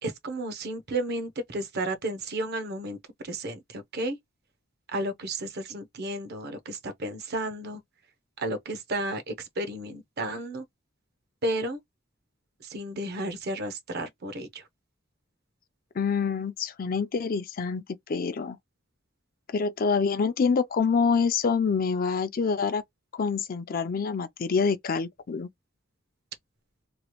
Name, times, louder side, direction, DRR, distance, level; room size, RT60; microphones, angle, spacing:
voice 1, 0.0-3.0 3.2-4.2 4.9-7.8 8.4-10.6 11.4-11.8 12.6-14.6, right 1 dB, 50° right, 0.7 m, -32 dB
voice 2, 16.0-18.6 19.5-22.8 23.1-25.5, left 5 dB, 45° left, 0.4 m, -26 dB
2.9 x 2.4 x 2.9 m
head